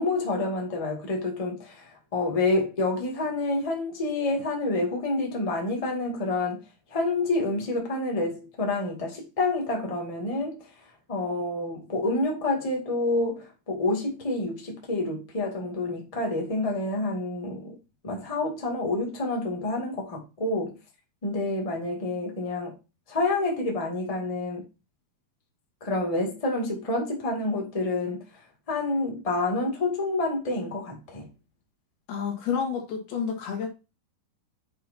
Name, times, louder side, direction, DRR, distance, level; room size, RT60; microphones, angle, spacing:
voice 1, 0.0-6.6 6.9-10.6 11.1-17.7 18.0-20.7 21.2-22.7 23.1-24.6 25.8-28.2 28.7-31.2, left 2 dB, 15° left, 1.5 m, -28 dB
voice 2, 32.1-33.7, left 6 dB, 90° left, 3.8 m, -29 dB
8.5 x 6.5 x 2.7 m
omnidirectional pair, 4.3 m